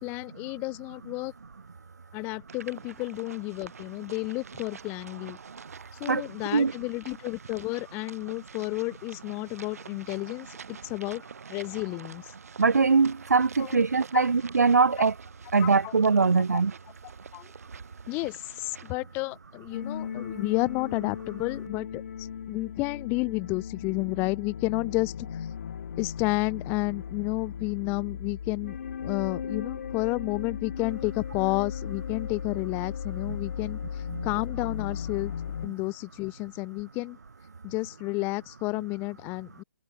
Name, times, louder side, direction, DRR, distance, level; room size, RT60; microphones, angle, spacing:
voice 1, 0.0-1.3 2.1-5.4 6.0-10.5 10.8-11.2 11.5-12.2 13.6-13.8 14.1-14.3 15.6-15.9 16.5-16.6 17.3-17.5 18.1-25.4 26.0-35.3 35.6-37.2 37.6-39.6, left 26 dB, 25° left, 1.8 m, -31 dB
sound 1, 2.5-18.9, right 6 dB, 65° right, 7.6 m, -48 dB
voice 2, 12.6-15.1 15.5-16.7 33.3-33.4 34.1-34.3, right 4 dB, 90° right, 1.2 m, -22 dB
sound 2, 19.7-35.7, left 7 dB, 60° left, 2.0 m, -36 dB
hypercardioid pair, 150°, 9 cm